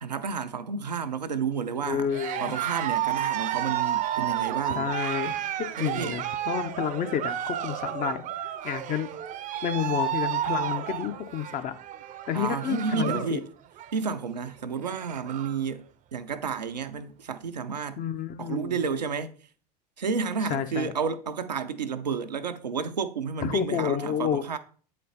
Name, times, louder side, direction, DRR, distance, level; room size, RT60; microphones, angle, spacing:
voice 1, 0.0-2.1 2.4-4.9 5.8-6.2 12.3-13.4 13.9-18.0 18.4-19.3 20.0-24.6, right 6 dB, 85° right, 0.6 m, -31 dB
voice 2, 1.8-2.6 4.7-9.1 9.6-11.7 12.3-13.4 18.0-18.8 20.5-20.9 23.4-24.4, left 9 dB, 40° left, 0.8 m, -30 dB
Cheering, 2.1-13.3 13.6-14.1 14.5-14.6 14.8-15.6, right 11 dB, 40° right, 0.6 m, -31 dB
8.2 x 4.3 x 4.0 m
figure-of-eight pair, 75°, 21 cm